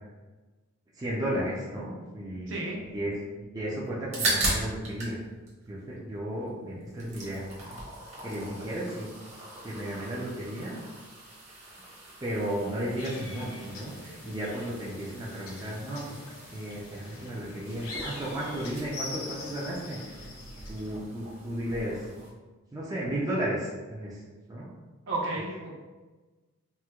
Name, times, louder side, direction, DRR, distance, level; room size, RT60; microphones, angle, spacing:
voice 1, 1.0-2.5 2.9-5.2 5.7-7.8 8.2-9.1 9.6-10.8 12.2-16.2 16.5-20.2 20.7-22.1 22.7-24.2 24.5-24.7, right 1 dB, 15° right, -6 dB, 0.4 m, -34 dB
sound 1, 3.9-5.2 5.5-6.5 6.8-22.3, right 2 dB, 35° right, 0.9 m, -39 dB
sound 2, 13.0-21.0, left 2 dB, 80° left, 0.6 m, -44 dB
voice 2, 25.1-25.7, right 2 dB, 60° right, -4 dB, 0.8 m, -32 dB
4.3 x 2.1 x 2.3 m, 1.2 s
head